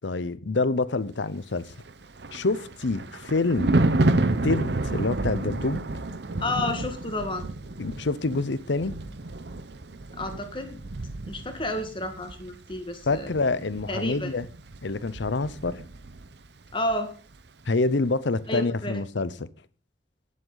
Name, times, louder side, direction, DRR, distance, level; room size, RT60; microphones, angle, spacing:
voice 1, 0.0-1.7 2.3-3.8 4.4-5.8 7.8-8.9 13.1-14.5 14.8-15.8 17.7-19.5, left 3 dB, 75° left, 0.7 m, -27 dB
Thunder, 1.8-16.4 16.7-16.9, right 2 dB, 65° right, 0.8 m, -30 dB
voice 2, 6.4-7.5 10.2-10.8 11.3-13.3 13.9-14.3 16.7-17.1 18.5-19.0, left 1 dB, 25° left, 1.8 m, -31 dB
18.5 x 7.5 x 4.0 m
head